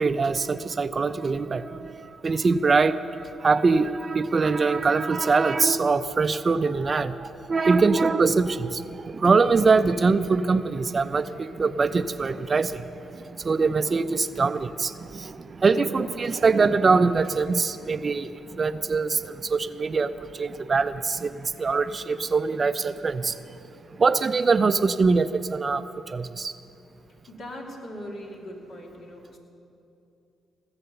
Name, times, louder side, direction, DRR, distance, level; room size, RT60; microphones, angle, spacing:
voice 1, 0.0-23.4 24.0-26.5, right 4 dB, 40° right, 13 dB, 0.5 m, -23 dB
voice 2, 27.3-29.4, equal, 65° left, -1 dB, 2.7 m, -40 dB
18.0 x 7.9 x 6.8 m, 2.8 s
supercardioid pair, 60°, 0 cm